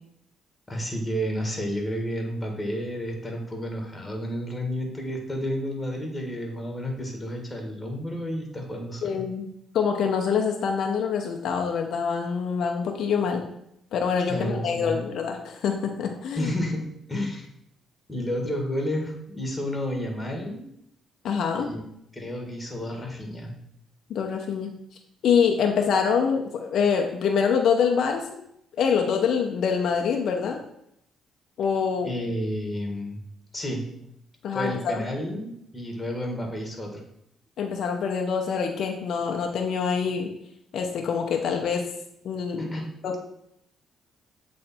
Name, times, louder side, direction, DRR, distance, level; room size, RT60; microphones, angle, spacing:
voice 1, 0.7-9.2 14.3-15.0 16.4-16.8 17.1-17.5 18.1-20.6 21.6-21.8 22.1-23.5 32.0-33.2 33.5-33.8 34.5-37.0 42.6-42.8, equal, 15° left, 1 dB, 1.6 m, -31 dB
voice 2, 9.0-9.5 9.7-13.4 13.9-16.5 21.2-21.7 24.1-24.7 25.2-28.2 28.8-30.6 31.6-32.1 34.4-35.0 37.6-40.3 40.7-41.8 42.2-42.7 43.0-43.2, left 6 dB, 70° left, 2 dB, 0.7 m, -25 dB
7.8 x 3.2 x 4.2 m, 0.74 s
cardioid pair, 90°, 0 cm